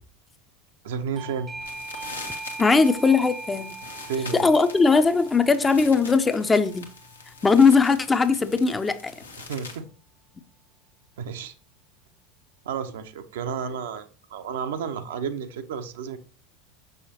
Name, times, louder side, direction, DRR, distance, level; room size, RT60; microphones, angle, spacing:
voice 1, 0.8-1.5 4.0-4.5 9.4-9.9 11.2-11.5 12.6-16.2, right 6 dB, 65° right, 0.6 m, -32 dB
Doorbell, 1.1-7.6, right 3 dB, 25° right, 0.6 m, -41 dB
sound 1, 1.5-9.8, left 4 dB, 85° left, 0.9 m, -43 dB
voice 2, 2.6-3.7 4.3-6.9 7.4-9.1, left 4 dB, 15° left, 0.5 m, -19 dB
6.2 x 5.6 x 2.8 m
figure-of-eight pair, 75°, 0 cm